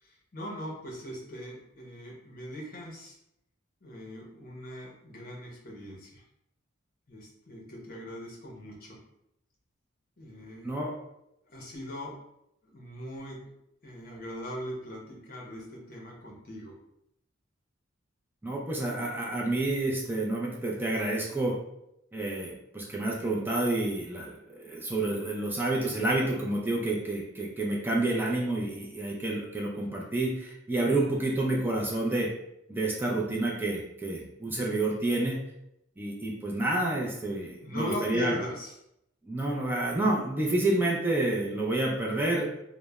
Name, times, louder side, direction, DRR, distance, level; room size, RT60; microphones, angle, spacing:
voice 1, 0.0-3.2 3.8-6.2 7.1-9.0 10.2-10.8 11.5-12.1 12.6-13.4 13.8-16.7 37.6-38.7, left 1 dB, 45° left, -1 dB, 0.7 m, -40 dB
voice 2, 18.4-21.5 22.1-32.3 32.7-35.4 36.0-38.4 39.3-42.4, right 2 dB, 10° right, -2 dB, 0.3 m, -29 dB
3.0 x 2.0 x 2.2 m, 0.81 s
head